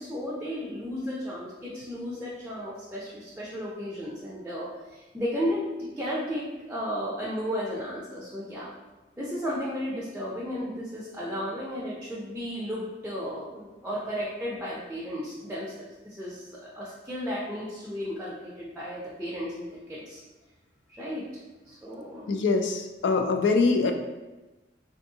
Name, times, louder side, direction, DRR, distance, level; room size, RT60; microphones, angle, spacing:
voice 1, 0.0-8.7 9.2-20.2 20.9-21.2 21.7-22.3, equal, 10° right, -6 dB, 0.5 m, -34 dB
voice 2, 22.3-23.9, left 4 dB, 75° left, 5 dB, 0.4 m, -23 dB
3.4 x 2.6 x 2.7 m, 1.1 s
head